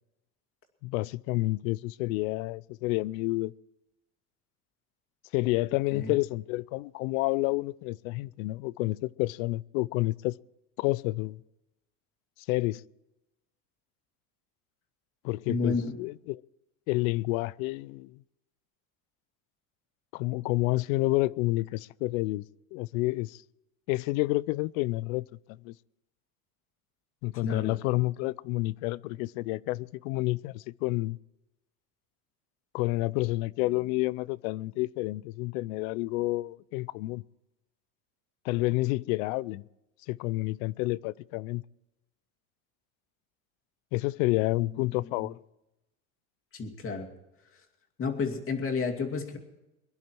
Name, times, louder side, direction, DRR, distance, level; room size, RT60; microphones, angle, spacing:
voice 1, 0.8-3.5 5.3-10.4 10.8-11.4 12.5-12.8 15.2-16.4 16.9-18.2 20.1-22.4 22.7-23.4 23.9-25.2 25.6-25.7 27.2-31.2 32.7-37.2 38.4-39.6 40.1-41.6 43.9-45.4, left 20 dB, 80° left, 0.6 m, -29 dB
voice 2, 15.5-16.0 27.4-27.8 44.6-45.3 46.5-47.1 48.0-49.4, left 4 dB, 30° left, 2.4 m, -32 dB
22.5 x 11.0 x 4.6 m
supercardioid pair, 125°, 41 cm